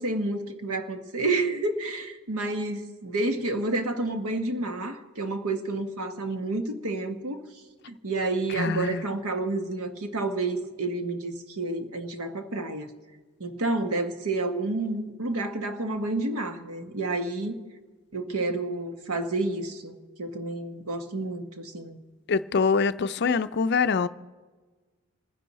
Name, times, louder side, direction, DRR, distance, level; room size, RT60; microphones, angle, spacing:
voice 1, 0.0-7.4 7.9-12.9 13.4-17.6 18.1-22.0, right 2 dB, 85° right, 1.3 m, -30 dB
voice 2, 8.6-9.0 22.3-24.1, left 5 dB, 50° left, 0.4 m, -24 dB
27.5 x 10.0 x 4.2 m
head